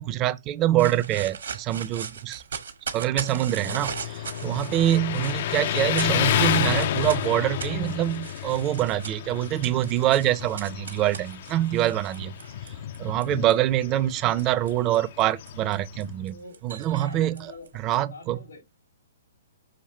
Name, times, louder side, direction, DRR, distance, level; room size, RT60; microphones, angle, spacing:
voice 1, 0.0-2.4 2.9-12.4 13.0-16.4 16.6-17.5 17.8-18.4, right 13 dB, 25° right, 0.5 m, -25 dB
sound 1, 0.8-13.5 14.1-18.0, right 6 dB, 70° right, 1.3 m, -39 dB
Motorcycle, 3.6-16.2, left 11 dB, 50° left, 0.4 m, -30 dB
voice 2, 4.3-4.7 12.6-13.0 16.3-16.6 17.0-17.7 18.1-18.8, left 2 dB, 90° left, 3.2 m, -46 dB
6.5 x 2.8 x 5.6 m
hypercardioid pair, 130°, 0 cm